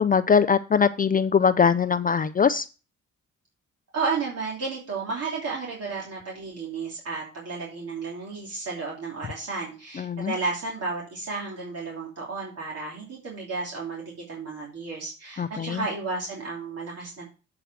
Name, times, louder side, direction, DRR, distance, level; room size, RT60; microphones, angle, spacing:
voice 1, 0.0-2.6 10.0-10.3 15.4-15.8, left 6 dB, 30° left, 12 dB, 0.4 m, -21 dB
voice 2, 3.9-17.3, right 4 dB, 55° right, -3 dB, 3.0 m, -32 dB
8.0 x 4.8 x 6.1 m, 0.34 s
cardioid pair, 90°, 30 cm